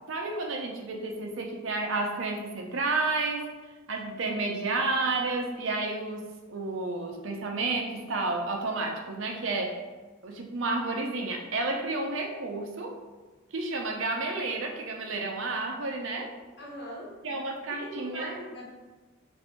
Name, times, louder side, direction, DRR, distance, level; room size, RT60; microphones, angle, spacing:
voice 1, 0.1-3.5 3.9-9.8 10.2-13.0 13.5-16.3 17.2-18.3, right 3 dB, 65° right, 2 dB, 0.6 m, -31 dB
voice 2, 16.4-17.1 17.8-18.7, equal, 55° left, -4 dB, 1.1 m, -41 dB
3.1 x 2.6 x 4.4 m, 1.3 s
head